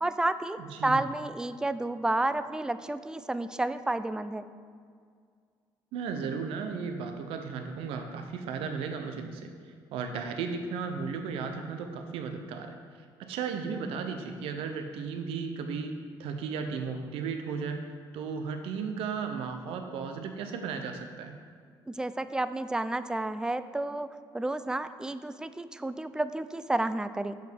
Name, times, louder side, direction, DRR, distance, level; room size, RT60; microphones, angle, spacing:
voice 1, 0.0-4.4 21.9-24.1 24.3-27.3, right 2 dB, 10° right, 13 dB, 0.4 m, -31 dB
voice 2, 0.6-1.0 5.9-9.5 9.9-12.8 13.2-17.9 18.1-21.4, right 5 dB, 80° right, 6 dB, 0.7 m, -35 dB
7.2 x 5.8 x 4.6 m, 2.1 s
supercardioid pair, 75°, 9 cm